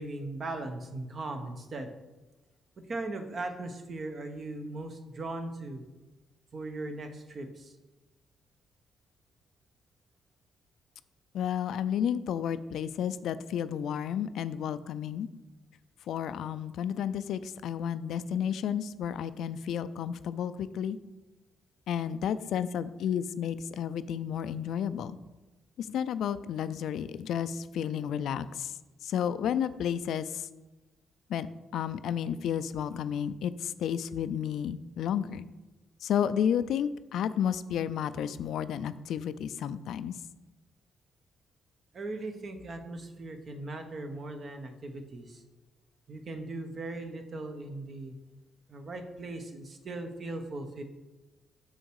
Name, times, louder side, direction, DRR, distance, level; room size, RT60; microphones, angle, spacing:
voice 1, 0.0-1.9 2.9-5.8 6.5-7.7 41.9-45.4 46.1-48.1 48.7-50.8, right 2 dB, 45° right, 6 dB, 1.0 m, -38 dB
voice 2, 11.3-15.3 16.1-21.0 21.9-25.2 25.8-28.7 29.0-30.5 31.3-31.5 31.7-35.4 36.0-40.2, left 9 dB, 75° left, 13 dB, 0.4 m, -32 dB
6.4 x 6.4 x 4.7 m, 1.1 s
cardioid pair, 90°, 0 cm